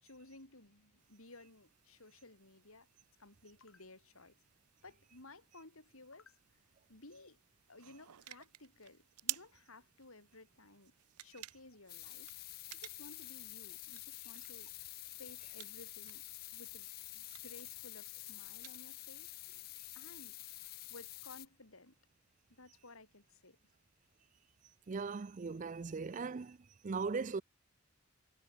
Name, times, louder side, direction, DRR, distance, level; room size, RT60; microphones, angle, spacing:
voice 1, 0.0-2.9 3.2-4.4 4.8-6.4 6.9-7.4 7.7-10.9 11.2-12.3 12.7-14.9 15.2-16.2 16.5-16.9 17.1-19.3 19.9-20.4 20.9-22.0 22.5-23.6, left 2 dB, 70° left, 4.0 m, -57 dB
sound 1, 1.0-19.4, right 18 dB, 85° right, 0.7 m, -53 dB
sound 2, 11.9-21.5, left 19 dB, 40° left, 0.4 m, -49 dB
voice 2, 24.9-26.6 26.8-27.4, right 4 dB, 35° right, 0.4 m, -38 dB
head